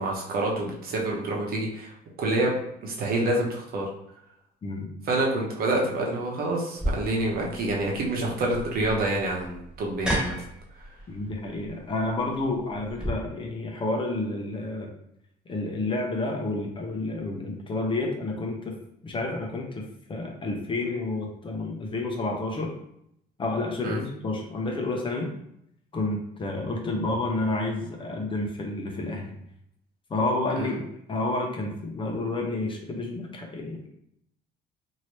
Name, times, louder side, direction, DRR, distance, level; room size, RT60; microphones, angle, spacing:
voice 1, 0.0-1.9 2.2-2.5 2.8-3.9 5.1-10.3 23.8-24.0 30.6-30.7, right 2 dB, 60° right, -1 dB, 1.0 m, -27 dB
sound 1, 6.8-13.1, equal, 5° right, 0.9 m, -34 dB
voice 2, 11.1-14.9 15.5-18.8 19.0-22.7 23.4-25.3 25.9-29.3 30.1-33.9, left 2 dB, 30° left, 1 dB, 0.7 m, -30 dB
2.9 x 2.7 x 3.1 m, 0.75 s
cardioid pair, 110°, 17 cm